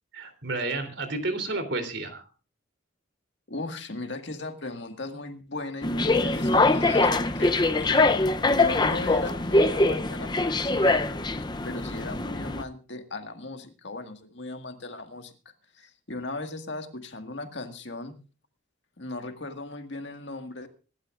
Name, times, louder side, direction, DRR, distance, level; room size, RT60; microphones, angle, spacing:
voice 1, 0.1-2.3, right 2 dB, 65° right, 8 dB, 3.4 m, -31 dB
voice 2, 3.5-8.2 8.5-11.0 11.6-15.3 15.7-18.1 19.0-20.7, left 2 dB, 65° left, 5 dB, 1.9 m, -37 dB
sound 1, 5.8-12.6, left 2 dB, 20° left, 0.6 m, -23 dB
25.5 x 12.0 x 2.5 m, 0.34 s
head